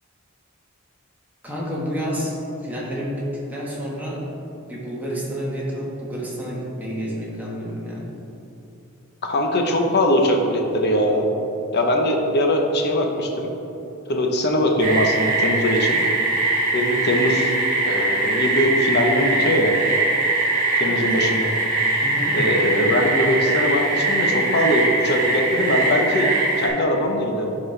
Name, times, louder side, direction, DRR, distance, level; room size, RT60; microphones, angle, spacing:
voice 1, 1.4-4.2 4.6-8.0 20.8-21.1 22.0-22.4, equal, 10° right, -6 dB, 1.5 m, -29 dB
voice 2, 9.2-11.3 11.7-13.5 14.1-16.0 16.7-17.5 17.8-19.7 20.8-21.5 21.9-22.0 22.3-27.5, left 1 dB, 50° left, 2 dB, 0.9 m, -21 dB
sound 1, 14.8-26.7, right 2 dB, 40° right, 1.7 m, -22 dB
11.0 x 4.3 x 3.3 m, 2.9 s
head